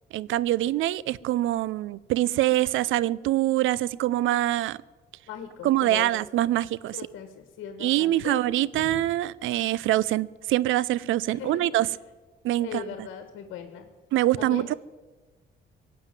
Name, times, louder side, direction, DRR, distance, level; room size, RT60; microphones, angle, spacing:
voice 1, 0.1-4.8 5.6-7.0 7.8-11.9 12.4-12.8 14.1-14.7, right 14 dB, 80° right, 22 dB, 0.5 m, -24 dB
voice 2, 5.3-6.1 6.9-8.4 8.7-9.0 11.3-12.0 12.6-13.9 14.4-14.7, left 8 dB, 85° left, 8 dB, 1.5 m, -39 dB
18.0 x 7.8 x 9.1 m, 1.3 s
cardioid pair, 90°, 20 cm